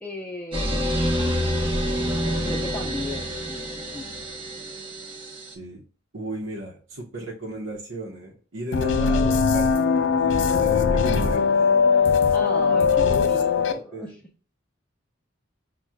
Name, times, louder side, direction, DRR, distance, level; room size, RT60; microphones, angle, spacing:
voice 1, 0.0-0.9 2.4-4.6 12.3-14.2, left 1 dB, 10° left, -3 dB, 0.5 m, -36 dB
sound 1, 0.5-5.5, equal, 25° right, 0.9 m, -27 dB
voice 2, 6.1-11.9 13.0-13.4 13.7-14.1, right 1 dB, 85° right, -4 dB, 0.9 m, -35 dB
sound 2, 8.7-13.7, left 5 dB, 70° left, 0.4 m, -20 dB
5.8 x 2.3 x 2.3 m, 0.37 s
head